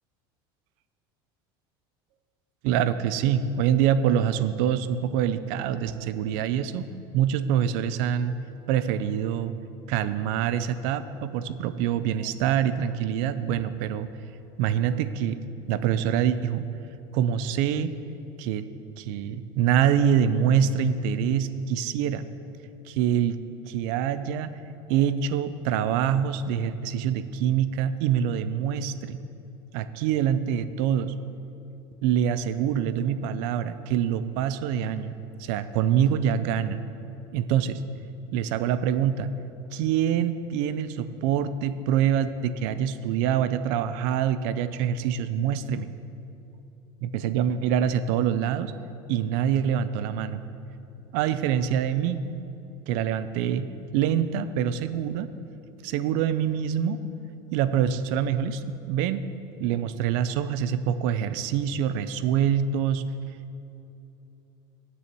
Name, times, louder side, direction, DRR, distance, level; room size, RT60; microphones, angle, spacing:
voice 1, 2.6-8.4 8.7-9.6 9.9-14.1 14.6-15.4 15.7-16.7 17.1-17.9 18.4-18.7 19.0-22.2 22.9-23.4 23.7-24.6 24.9-29.2 29.7-31.1 32.0-35.1 35.4-36.8 37.3-37.8 38.3-39.3 39.7-45.9 47.0-48.7 49.1-50.4 51.1-52.2 52.9-53.7 53.9-55.3 55.8-57.0 57.5-59.3 59.6-63.0, right 9 dB, 60° right, 13 dB, 0.5 m, -25 dB
7.6 x 7.0 x 8.2 m, 2.9 s
cardioid pair, 175°, 12 cm